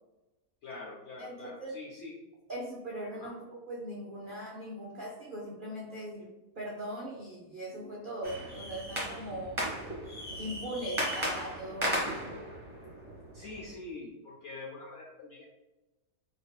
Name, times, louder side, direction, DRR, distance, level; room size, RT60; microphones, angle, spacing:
voice 1, 0.6-2.1 3.1-3.3 13.3-15.4, left 3 dB, 65° left, -3 dB, 0.7 m, -44 dB
voice 2, 1.2-1.7 2.5-6.3 6.6-9.6 10.4-12.4, right 1 dB, 90° right, -5 dB, 0.4 m, -40 dB
sound 1, 8.2-13.7, equal, 20° right, 1.0 m, -36 dB
4.6 x 2.6 x 2.3 m, 1.1 s
omnidirectional pair, 1.7 m